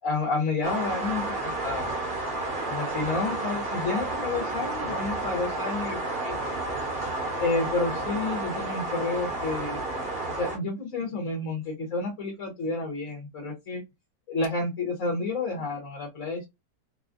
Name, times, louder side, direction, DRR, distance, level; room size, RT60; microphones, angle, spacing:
voice 1, 0.0-2.0 2.7-6.4 7.4-9.8 10.3-13.8 14.3-16.5, left 3 dB, 60° left, -1 dB, 1.3 m, -30 dB
sound 1, 0.6-10.6, right 2 dB, 45° right, 1.1 m, -31 dB
4.1 x 2.3 x 2.5 m, 0.21 s
omnidirectional pair, 1.6 m